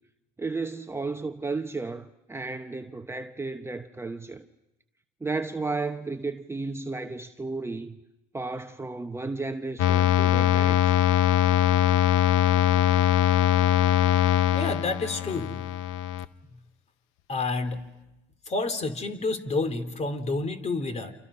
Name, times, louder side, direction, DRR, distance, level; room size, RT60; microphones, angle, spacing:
voice 1, 0.4-4.4 5.2-8.0 8.3-10.9, right 3 dB, 10° right, 1.0 m, -33 dB
sound 1, 9.8-16.3, left 12 dB, 70° left, 0.9 m, -22 dB
voice 2, 14.5-15.6 16.5-16.6 17.3-17.8 18.5-21.1, left 3 dB, 30° left, 3.0 m, -29 dB
29.0 x 27.5 x 5.6 m
supercardioid pair, 90°, 21 cm